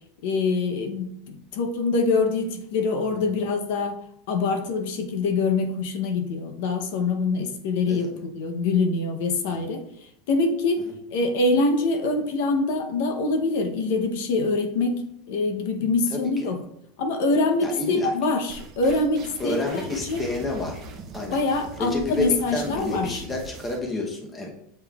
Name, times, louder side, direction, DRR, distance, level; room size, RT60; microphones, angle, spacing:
voice 1, 0.2-4.0 4.3-15.0 15.3-16.6 17.0-20.3 21.3-23.2, left 3 dB, 60° left, 5 dB, 0.7 m, -25 dB
voice 2, 17.6-18.1 19.4-20.9 21.1-21.4 21.8-24.5, left 2 dB, 10° left, 0 dB, 0.8 m, -29 dB
sound 1, 18.5-23.8, right 4 dB, 25° right, 0.6 m, -41 dB
7.7 x 5.3 x 2.3 m, 0.74 s
supercardioid pair, 175°, 0 cm